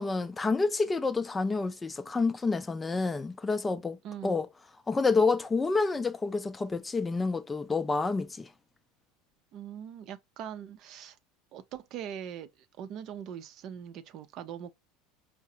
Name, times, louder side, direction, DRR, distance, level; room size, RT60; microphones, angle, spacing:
voice 1, 0.0-4.5 4.9-8.5, left 4 dB, 15° left, 0.4 m, -28 dB
voice 2, 4.0-4.4 9.5-11.2 11.5-12.5 12.8-14.7, right 9 dB, 55° right, 0.5 m, -41 dB
4.6 x 2.0 x 2.6 m
hypercardioid pair, 90°, 0 cm